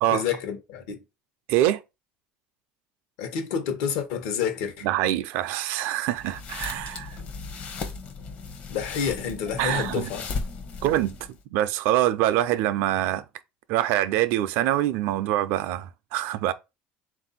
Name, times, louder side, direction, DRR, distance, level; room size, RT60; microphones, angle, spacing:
voice 1, 0.1-1.0 3.2-4.9 8.7-10.3, left 7 dB, 80° left, 1.0 m, -29 dB
voice 2, 1.5-1.8 4.8-7.1 9.6-10.1 10.8-11.2 11.5-13.2 13.7-16.5, right 13 dB, 70° right, 0.4 m, -24 dB
sound 1, 6.1-11.4, left 4 dB, 40° left, 0.7 m, -36 dB
3.7 x 2.6 x 4.0 m
cardioid pair, 145°, 4 cm